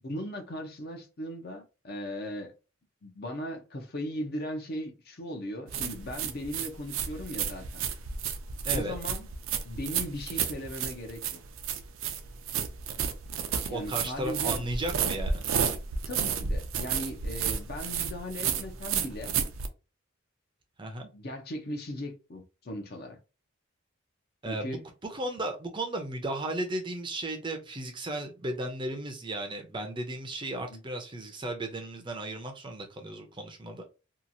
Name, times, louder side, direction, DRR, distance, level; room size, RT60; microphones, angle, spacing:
voice 1, 0.0-2.5 3.0-7.8 8.7-9.3 9.6-11.4 13.7-14.7 16.1-19.4 21.1-23.2 24.4-24.8 30.6-30.8, equal, 45° left, 0.6 m, -38 dB
sound 1, 5.7-19.7, right 7 dB, 75° right, 0.5 m, -32 dB
voice 2, 8.6-8.9 13.7-15.4 20.8-21.1 24.4-33.9, right 1 dB, 25° right, 0.5 m, -35 dB
2.9 x 2.4 x 2.6 m
head